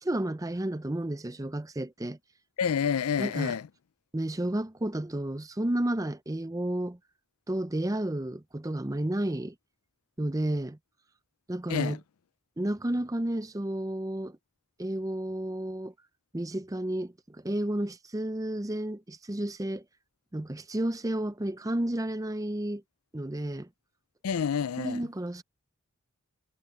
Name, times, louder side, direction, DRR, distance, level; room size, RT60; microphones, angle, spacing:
voice 1, 0.0-2.2 3.2-3.5 4.1-7.0 7.5-9.5 10.2-10.8 11.5-12.0 12.6-14.4 14.8-15.9 16.3-17.1 17.4-19.8 20.3-22.8 23.1-23.7 24.8-25.4, right 1 dB, 15° right, 0.5 m, -31 dB
voice 2, 2.6-3.7 11.7-12.0 24.2-25.1, left 7 dB, 85° left, 0.4 m, -28 dB
head